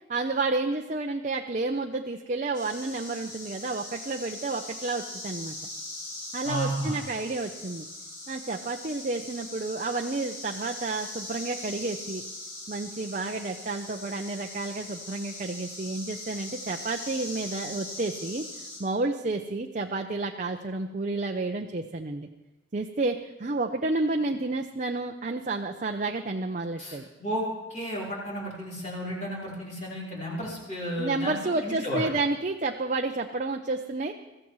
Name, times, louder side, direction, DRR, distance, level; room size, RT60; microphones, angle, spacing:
voice 1, 0.1-5.6 6.3-7.9 8.3-12.2 12.7-18.4 18.8-22.3 22.7-27.1 31.0-34.1, right 3 dB, 40° right, 3 dB, 0.6 m, -30 dB
sound 1, 2.5-18.8, left 2 dB, 55° left, 5.8 m, -41 dB
voice 2, 6.4-7.0 26.8-32.1, equal, 35° left, -6 dB, 4.0 m, -33 dB
22.0 x 14.5 x 3.1 m, 1.1 s
head